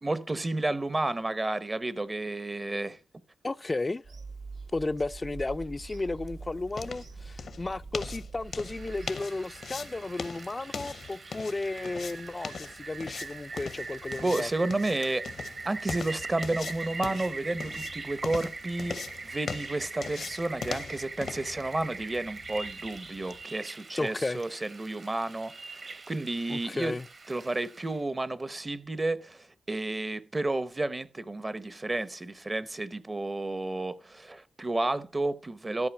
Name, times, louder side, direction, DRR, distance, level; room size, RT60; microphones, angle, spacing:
voice 1, 0.0-3.0 14.2-15.3 15.7-26.9 27.3-35.9, right 2 dB, 25° right, 0.8 m, -31 dB
voice 2, 3.4-4.0 4.7-14.5 24.0-24.4 26.5-27.1, left 2 dB, 25° left, 0.4 m, -33 dB
Bird vocalization bird call bird song / Telephone, 4.0-9.1, right 4 dB, 80° right, 1.8 m, -44 dB
sound 1, 5.6-23.4, left 5 dB, 70° left, 0.8 m, -41 dB
Rain, 8.5-28.0, right 3 dB, 50° right, 1.3 m, -42 dB
13.5 x 4.8 x 5.9 m
cardioid pair, 90°, 0 cm